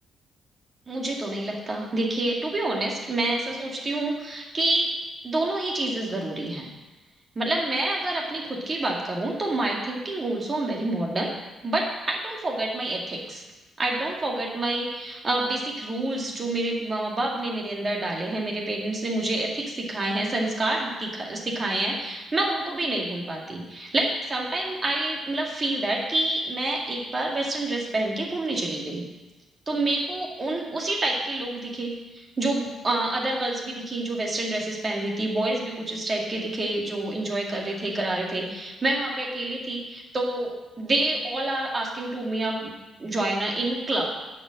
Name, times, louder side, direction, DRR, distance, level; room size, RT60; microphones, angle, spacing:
voice 1, 0.9-4.9 5.2-6.7 7.4-11.3 11.6-13.4 13.8-29.0 29.7-40.5 40.8-42.7 43.0-44.0, right 2 dB, 25° right, -1 dB, 2.1 m, -28 dB
10.5 x 5.3 x 7.7 m, 1.2 s
cardioid pair, 140°, 0 cm